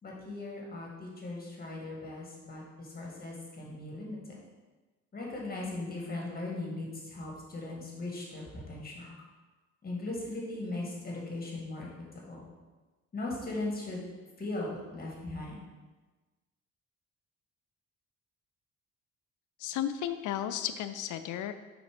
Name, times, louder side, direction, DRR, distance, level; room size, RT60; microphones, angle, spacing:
voice 1, 0.0-4.2 5.1-9.1 9.8-11.9 12.1-12.4 13.1-14.1 14.4-15.6, left 2 dB, 30° left, -3 dB, 1.8 m, -38 dB
voice 2, 19.6-21.5, left 10 dB, 80° left, 10 dB, 0.5 m, -34 dB
5.2 x 4.0 x 4.9 m, 1.2 s
cardioid pair, 90°, 30 cm